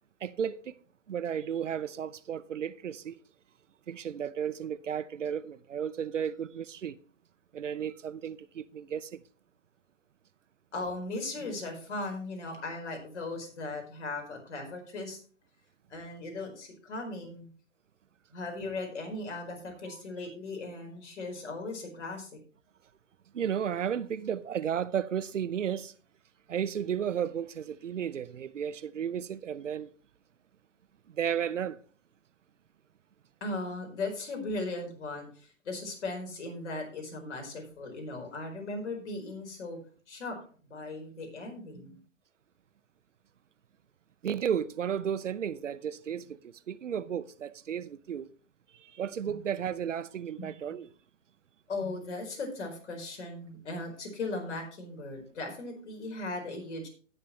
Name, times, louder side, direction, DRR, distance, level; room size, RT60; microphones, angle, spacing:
voice 1, 0.2-0.8 1.1-3.2 3.9-7.0 7.5-9.2 19.9-20.0 23.3-25.9 26.5-29.9 31.1-31.8 44.2-48.3 48.7-50.9, right 8 dB, 70° right, 0.7 m, -33 dB
voice 2, 10.7-15.2 15.9-17.5 18.3-22.4 33.4-39.8 40.1-40.4 40.6-42.0 50.7-50.8 51.7-56.9, left 2 dB, 65° left, 4.6 m, -38 dB
17.0 x 6.8 x 3.1 m
figure-of-eight pair, 115°, 38 cm